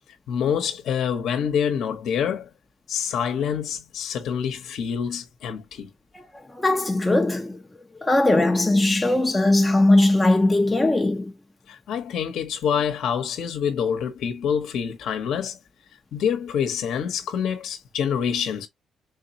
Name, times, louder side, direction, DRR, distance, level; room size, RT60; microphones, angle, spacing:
voice 1, 0.3-2.5 2.9-5.9 11.7-15.6 16.1-18.7, left 7 dB, 75° left, 0.9 m, -26 dB
voice 2, 6.5-7.6 8.0-11.3, left 2 dB, 15° left, 0.6 m, -19 dB
3.7 x 2.8 x 2.7 m
cardioid pair, 90°, 0 cm